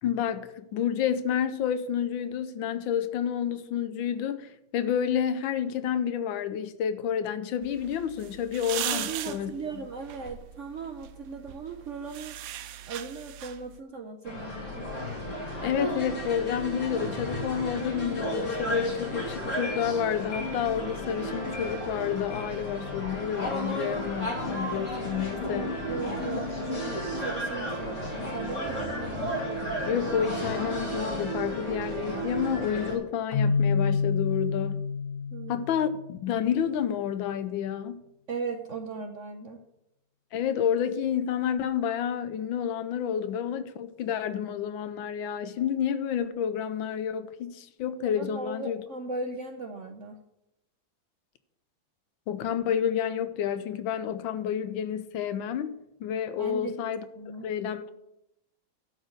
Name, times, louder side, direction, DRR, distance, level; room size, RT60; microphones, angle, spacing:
voice 1, 0.0-9.5 15.6-25.7 29.8-34.9 35.5-38.0 40.3-48.8 52.3-57.0 57.4-57.8, left 8 dB, 80° left, 1.5 m, -29 dB
sound 1, 7.6-13.8, right 12 dB, 80° right, 1.3 m, -39 dB
voice 2, 8.9-12.4 12.9-14.9 25.5-26.8 27.2-29.1 35.3-35.7 38.3-39.6 48.2-50.2 56.4-56.7 57.2-57.5, right 4 dB, 60° right, 0.8 m, -37 dB
sound 2, 14.2-33.0, equal, 40° left, 2.9 m, -33 dB
Keyboard (musical), 33.3-36.2, left 5 dB, 55° left, 0.6 m, -27 dB
12.0 x 4.5 x 8.1 m
omnidirectional pair, 2.2 m